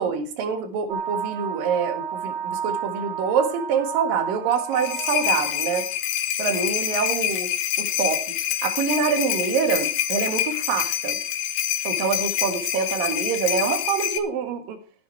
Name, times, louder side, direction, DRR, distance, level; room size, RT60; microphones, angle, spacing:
voice 1, 0.0-5.9 6.4-11.2 11.9-14.8, right 6 dB, 75° right, 7 dB, 3.3 m, -26 dB
sound 1, 0.9-5.9, right 7 dB, 55° right, 1.9 m, -31 dB
sound 2, 4.5-14.2, left 11 dB, 90° left, 2.9 m, -26 dB
14.0 x 10.5 x 4.5 m, 0.40 s
omnidirectional pair, 4.1 m